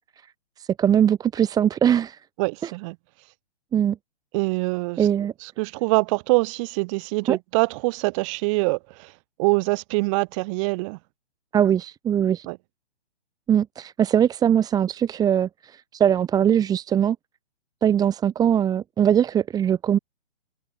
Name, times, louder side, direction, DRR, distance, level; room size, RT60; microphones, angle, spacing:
voice 1, 0.6-2.2 2.6-2.7 3.7-4.0 5.0-5.3 7.3-7.4 11.5-12.5 13.5-17.2 17.8-20.0, right 9 dB, 10° right, 2.5 m, -21 dB
voice 2, 2.4-3.0 4.3-5.1 5.4-9.1 9.4-11.0 12.5-12.6, right 27 dB, 25° right, 7.0 m, -24 dB
hypercardioid pair, 155°, 34 cm